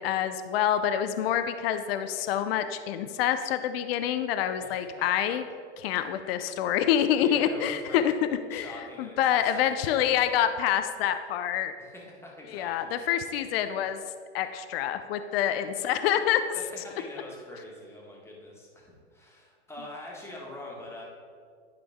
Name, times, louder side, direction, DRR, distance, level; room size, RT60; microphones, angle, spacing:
voice 1, 0.0-5.4 5.8-8.1 8.5-11.7 12.5-14.0 14.3-16.4, left 10 dB, 55° left, 10 dB, 0.6 m, -27 dB
voice 2, 4.6-5.4 5.8-6.1 7.2-8.0 8.5-9.7 11.8-13.1 16.5-21.0, left 1 dB, 5° left, -3 dB, 1.7 m, -44 dB
11.0 x 5.1 x 3.6 m, 2.1 s
hypercardioid pair, 115°, 35 cm